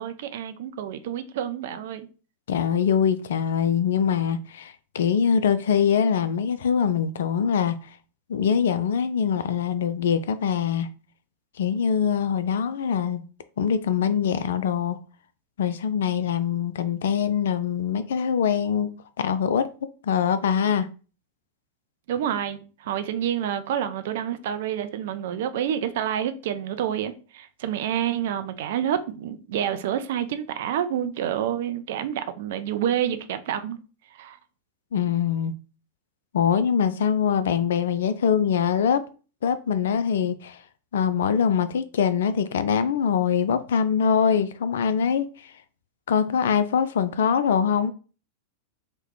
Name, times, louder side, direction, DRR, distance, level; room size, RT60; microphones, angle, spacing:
voice 1, 0.0-2.1 22.1-33.8 34.2-34.4, right 10 dB, 55° right, 0.4 m, -28 dB
voice 2, 2.5-7.8 8.3-10.9 11.6-13.2 13.6-15.0 15.6-18.9 19.2-19.7 20.0-20.9 34.9-35.5 36.3-39.0 39.4-40.6 40.9-45.2 46.1-47.9, left 7 dB, 60° left, 0.3 m, -23 dB
2.9 x 2.1 x 3.8 m
figure-of-eight pair, 90°, 0 cm